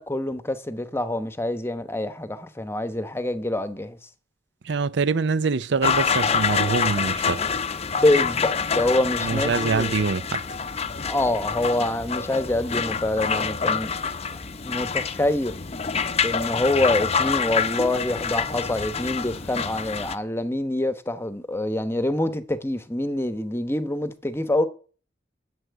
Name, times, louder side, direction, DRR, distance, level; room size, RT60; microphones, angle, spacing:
voice 1, 0.0-4.0 8.0-9.9 11.1-13.9 14.6-15.6 16.2-24.7, left 1 dB, 15° left, 0.9 m, -25 dB
voice 2, 4.6-7.4 9.2-10.4, right 4 dB, 70° right, 0.5 m, -24 dB
sound 1, 5.8-20.2, left 6 dB, 35° left, 0.7 m, -26 dB
11.5 x 7.7 x 9.5 m
head